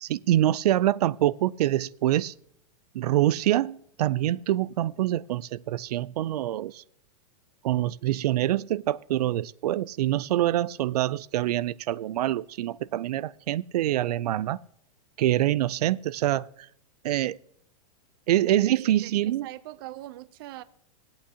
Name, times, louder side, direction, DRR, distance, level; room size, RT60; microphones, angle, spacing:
voice 1, 0.0-2.3 2.9-6.8 7.6-14.6 15.2-16.7 17.0-17.4 18.3-19.5, right 13 dB, 90° right, 0.4 m, -25 dB
voice 2, 18.8-20.6, right 16 dB, 35° right, 0.6 m, -42 dB
19.0 x 8.6 x 2.8 m
supercardioid pair, 175°, 19 cm